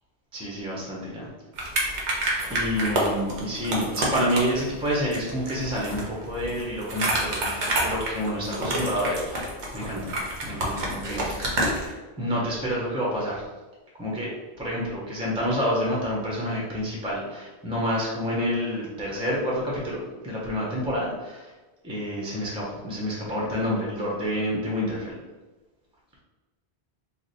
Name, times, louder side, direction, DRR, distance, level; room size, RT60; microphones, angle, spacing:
voice 1, 0.3-1.3 2.5-7.4 7.8-10.2 10.4-11.6 12.2-13.4 14.0-14.3 14.6-21.5 21.8-25.2, equal, 5° right, -4 dB, 0.6 m, -28 dB
sound 1, 1.6-11.9, right 1 dB, 85° right, 1.1 m, -29 dB
3.2 x 2.4 x 4.0 m, 1.2 s
omnidirectional pair, 1.1 m